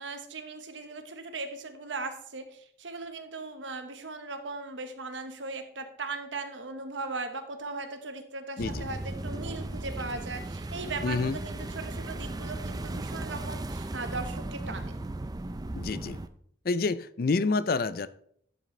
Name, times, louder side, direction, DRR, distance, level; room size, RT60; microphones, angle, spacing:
voice 1, 0.0-15.0, right 3 dB, 90° right, 7 dB, 1.2 m, -38 dB
voice 2, 8.6-8.9 11.0-11.4 15.7-16.2 16.6-18.1, left 3 dB, 50° left, 15 dB, 0.5 m, -28 dB
sound 1, 8.6-16.3, right 2 dB, 20° right, 0.4 m, -36 dB
11.5 x 7.4 x 3.3 m, 0.65 s
head